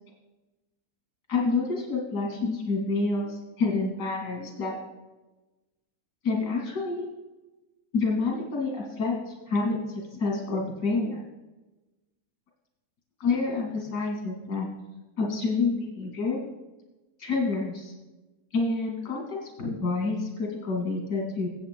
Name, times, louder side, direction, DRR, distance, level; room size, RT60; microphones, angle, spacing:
voice 1, 1.3-4.7 6.2-7.1 7.9-9.8 10.1-11.2 13.2-14.7 15.2-16.4 17.2-17.9 18.5-21.5, left 3 dB, 80° left, -1 dB, 2.7 m, -28 dB
21.0 x 8.6 x 2.2 m, 1.1 s
omnidirectional pair, 1.7 m